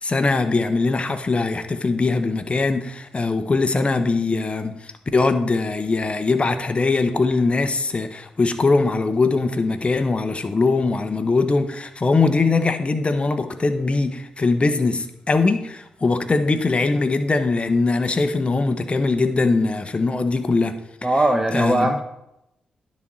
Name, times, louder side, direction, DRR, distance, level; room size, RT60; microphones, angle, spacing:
voice 1, 0.0-20.8 21.5-21.9, left 3 dB, 40° left, 1.1 m, -21 dB
voice 2, 21.0-22.0, right 1 dB, 15° right, 1.1 m, -19 dB
10.0 x 4.3 x 6.4 m
supercardioid pair, 40°, 3 cm